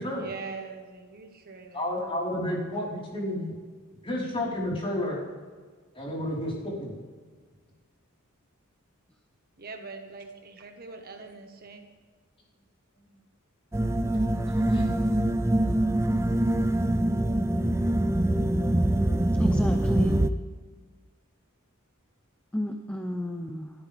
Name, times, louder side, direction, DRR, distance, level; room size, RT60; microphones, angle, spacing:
voice 1, 0.2-1.8 9.6-11.8, right 4 dB, 45° right, 4 dB, 1.6 m, -42 dB
voice 2, 1.7-3.5 4.0-5.2 5.9-6.9 14.7-14.8, left 1 dB, 25° left, -5 dB, 4.8 m, -31 dB
sound 1, 13.7-20.3, right 1 dB, 10° right, 0.5 m, -24 dB
voice 3, 19.3-20.2 22.5-23.7, left 1 dB, 5° left, 4 dB, 0.9 m, -33 dB
28.5 x 13.0 x 3.6 m, 1.6 s
head